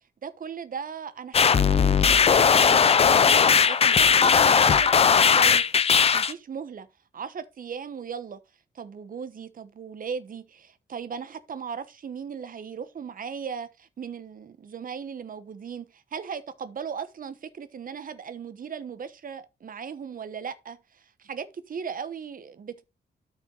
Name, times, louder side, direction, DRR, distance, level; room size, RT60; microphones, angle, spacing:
voice 1, 0.2-6.9 7.1-8.4 8.7-22.8, right 6 dB, 50° right, 0.9 m, -38 dB
sound 1, 1.3-6.3, left 6 dB, 35° left, 0.4 m, -18 dB
12.5 x 4.5 x 3.9 m
wide cardioid pair, 155°, 18 cm